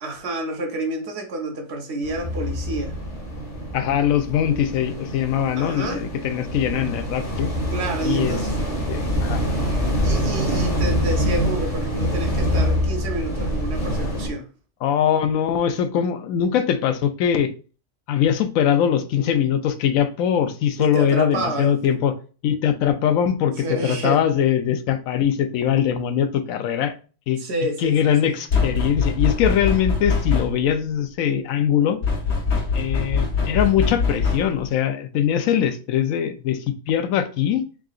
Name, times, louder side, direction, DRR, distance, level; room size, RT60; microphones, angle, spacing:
voice 1, 0.0-2.9 5.6-6.0 7.7-8.5 10.0-14.5 20.8-21.8 23.6-24.2 27.4-28.4, right 1 dB, 60° right, 1.0 m, -29 dB
sound 1, 2.0-14.3, equal, 30° left, 0.9 m, -25 dB
voice 2, 3.7-7.5 8.0-8.4 8.9-9.4 14.8-17.5 18.1-22.2 22.4-26.9 27.3-27.4 27.8-32.0 32.7-37.6, left 9 dB, 85° left, 1.0 m, -22 dB
sound 2, 28.5-30.7 32.0-34.7, left 5 dB, 60° left, 1.1 m, -23 dB
3.7 x 3.6 x 2.4 m
omnidirectional pair, 1.4 m